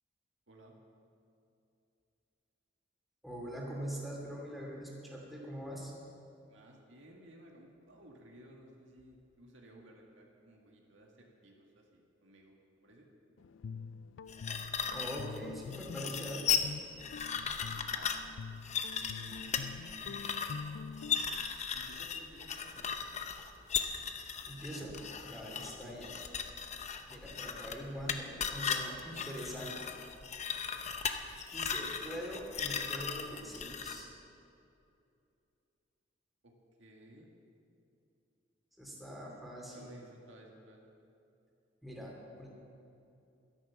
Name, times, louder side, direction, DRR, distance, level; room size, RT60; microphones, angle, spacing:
voice 1, 3.2-5.9 14.9-16.5 24.5-25.0 25.2-26.1 27.1-29.9 31.5-34.1 38.8-39.9 41.8-42.5, equal, ahead, -3 dB, 2.7 m, -43 dB
voice 2, 6.5-13.1 17.9-18.3 19.0-20.2 21.6-22.9 25.8-26.0 36.4-36.5 36.8-37.3 39.7-40.8, right 1 dB, 75° right, 0 dB, 1.9 m, -56 dB
Guitar, 13.4-21.4, left 5 dB, 75° left, 0.4 m, -46 dB
sound 1, 14.3-34.0, left 7 dB, 35° left, 0.7 m, -37 dB
12.5 x 11.0 x 7.2 m, 2.7 s
head